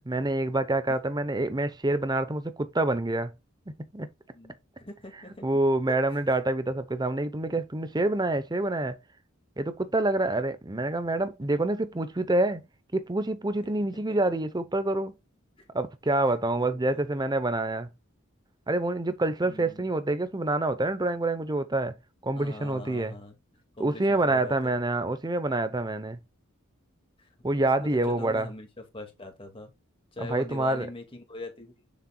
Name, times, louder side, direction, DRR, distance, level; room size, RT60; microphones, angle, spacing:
voice 1, 0.1-3.3 3.9-4.1 5.4-9.0 9.6-12.6 12.9-15.1 15.7-17.9 18.7-21.9 22.2-23.1 23.8-26.2 27.4-28.5 30.2-30.9, right 2 dB, 20° right, 0.8 m, -27 dB
voice 2, 4.3-5.5 5.9-6.4 14.1-14.2 15.6-15.7 16.6-17.2 19.4-19.9 22.3-23.4 23.8-24.9 27.2-27.3 27.5-28.7 28.9-29.7 30.1-31.8, left 2 dB, 25° left, 2.1 m, -43 dB
7.2 x 6.6 x 2.3 m
head